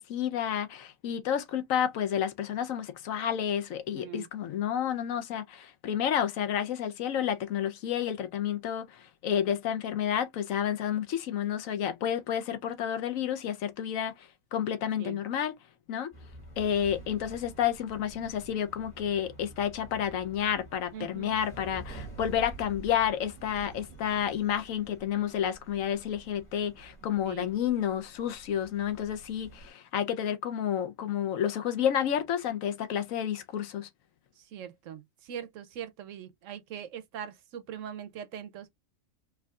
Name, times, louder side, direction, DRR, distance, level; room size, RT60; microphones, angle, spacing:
voice 1, 0.0-15.5 15.9-16.1 16.6-33.9, left 9 dB, 75° left, 1.0 m, -30 dB
voice 2, 3.9-4.3 15.0-15.2 20.9-21.4 27.3-27.5 34.4-38.7, right 9 dB, 70° right, 0.9 m, -41 dB
sound 1, 16.1-29.7, right 2 dB, 30° left, 2.1 m, -48 dB
4.6 x 2.7 x 2.3 m
omnidirectional pair, 1.5 m